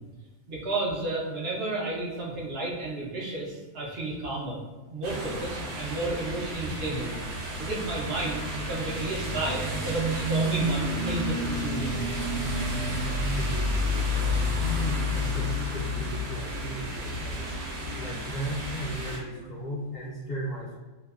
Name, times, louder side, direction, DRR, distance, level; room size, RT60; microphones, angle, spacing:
voice 1, 0.5-4.6 4.9-7.1 7.6-12.0, right 2 dB, 60° right, -5 dB, 0.7 m, -32 dB
sound 1, 5.0-19.2, left 1 dB, 90° right, 1.1 m, -30 dB
voice 2, 13.0-20.7, equal, 55° left, -9 dB, 0.7 m, -36 dB
2.7 x 2.2 x 2.3 m, 1.2 s
omnidirectional pair, 1.4 m